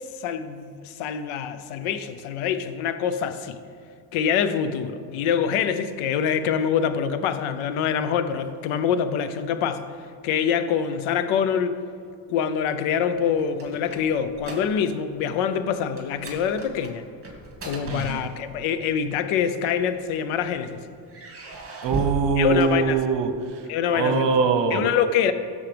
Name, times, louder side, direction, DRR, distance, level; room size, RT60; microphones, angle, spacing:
voice 1, 0.2-3.6 4.1-9.9 10.2-11.7 12.3-17.0 17.6-20.8 22.4-23.0 23.7-24.4 24.7-25.3, left 7 dB, 85° left, 11 dB, 0.7 m, -25 dB
sound 1, 13.2-15.1 15.3-15.6 16.0-18.8 19.6-20.5 21.1-23.4, right 4 dB, 30° right, 2.3 m, -37 dB
voice 2, 17.9-18.2 21.8-23.3 23.9-24.8, right 4 dB, 60° right, 6 dB, 1.0 m, -22 dB
14.0 x 7.0 x 3.4 m, 2.2 s
cardioid pair, 90°, 48 cm